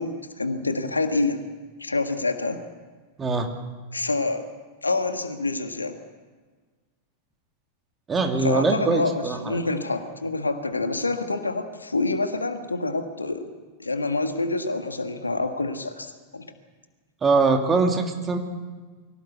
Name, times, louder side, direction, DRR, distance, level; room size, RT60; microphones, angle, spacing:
voice 1, 0.0-1.4 1.8-2.6 3.9-4.4 4.8-5.9 8.4-13.5 13.8-16.5, left 3 dB, 80° left, 8 dB, 1.6 m, -27 dB
voice 2, 8.1-9.6 17.2-18.4, right 4 dB, 20° right, 4 dB, 2.8 m, -22 dB
23.5 x 17.0 x 8.2 m, 1.4 s
figure-of-eight pair, 90°, 0 cm